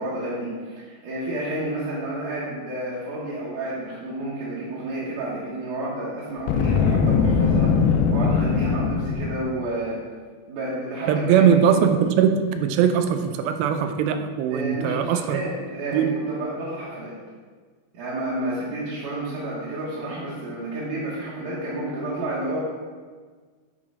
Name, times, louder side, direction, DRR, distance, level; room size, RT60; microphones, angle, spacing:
voice 1, 0.0-10.0 10.5-11.5 14.5-17.1 17.9-22.6, right 1 dB, 65° right, -9 dB, 2.3 m, -30 dB
Boom, 6.4-9.5, left 5 dB, 85° left, 2.5 m, -21 dB
voice 2, 11.1-15.4 15.9-16.2, right 8 dB, 85° right, 7 dB, 2.4 m, -20 dB
9.3 x 3.1 x 4.9 m, 1.5 s
omnidirectional pair, 4.4 m